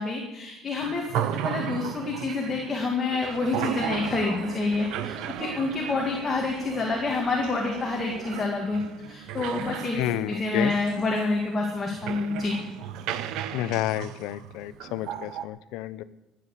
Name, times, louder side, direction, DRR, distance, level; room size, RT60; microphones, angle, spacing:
voice 1, 0.0-8.8 9.1-12.5, left 3 dB, 20° left, 0 dB, 2.2 m, -28 dB
sound 1, 0.8-15.5, right 10 dB, 70° right, 0.9 m, -35 dB
sound 2, 3.2-8.5, right 8 dB, 50° right, 1.2 m, -41 dB
voice 2, 9.9-10.7 13.5-16.0, left 14 dB, 75° left, 14 dB, 0.8 m, -30 dB
14.5 x 9.5 x 8.3 m, 0.93 s
cardioid pair, 165°, 0 cm